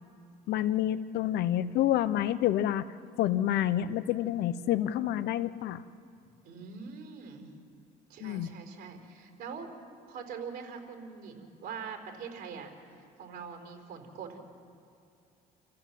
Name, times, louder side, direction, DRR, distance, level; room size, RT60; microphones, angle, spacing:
voice 1, 0.5-2.9 3.2-5.8 8.2-8.5, left 12 dB, 75° left, 14 dB, 0.8 m, -28 dB
voice 2, 6.2-7.5 8.1-9.7 10.1-12.7 13.0-14.4, right 6 dB, 60° right, 4 dB, 4.3 m, -43 dB
28.5 x 14.5 x 7.5 m, 2.6 s
cardioid pair, 110°, 17 cm